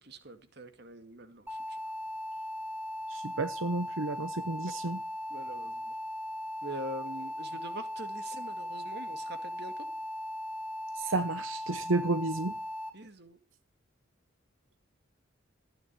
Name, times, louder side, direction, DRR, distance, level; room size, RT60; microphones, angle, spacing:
voice 1, 0.0-1.8 5.3-6.0 6.6-9.9 12.9-13.4, right 1 dB, 55° right, 2.0 m, -44 dB
sound 1, 1.5-12.9, left 1 dB, 10° right, 2.7 m, -38 dB
voice 2, 3.1-5.0 10.9-12.5, right 3 dB, 80° right, 0.9 m, -31 dB
14.5 x 9.5 x 8.8 m
head